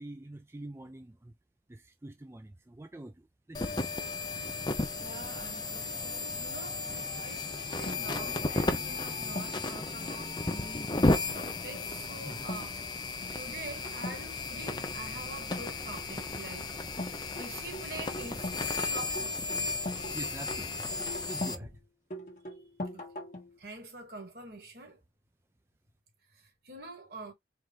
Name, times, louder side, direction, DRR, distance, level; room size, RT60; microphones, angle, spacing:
voice 1, 0.0-1.3 1.7-3.9 12.2-12.5 20.1-20.9 21.3-21.7, right 1 dB, 15° right, 0.3 m, -45 dB
sound 1, 3.5-21.6, left 3 dB, 25° left, 0.6 m, -34 dB
voice 2, 5.0-6.8 7.2-12.8 13.3-16.7 17.4-19.7 22.9-23.0 23.6-25.0 26.6-27.3, right 2 dB, 60° right, 1.9 m, -45 dB
sound 2, 7.9-9.7 10.9-11.2 11.6-11.8 12.3-12.7 13.0-13.4 13.8-14.2 15.4-16.2 17.0-18.7 19.0-21.6 22.1-23.6, left 1 dB, 45° left, 1.4 m, -41 dB
4.6 x 2.6 x 3.8 m
head